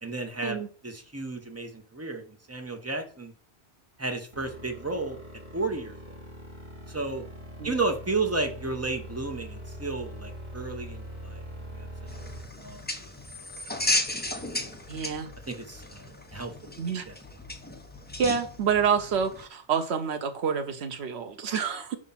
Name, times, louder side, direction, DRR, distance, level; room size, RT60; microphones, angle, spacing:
voice 1, 0.0-3.3 4.0-5.2 5.5-6.2 6.9-7.2 7.6-11.4 11.7-11.9 12.2-12.9 15.5-16.5 17.1-17.2, right 3 dB, 15° right, 0.8 m, -33 dB
sound 1, 4.3-12.4, equal, 45° right, 3.1 m, -42 dB
sound 2, 12.1-19.4, left 1 dB, 10° left, 0.5 m, -34 dB
voice 2, 14.9-15.3 16.8-17.0 18.2-22.0, right 7 dB, 70° right, 1.1 m, -28 dB
4.9 x 3.7 x 5.7 m
omnidirectional pair, 1.2 m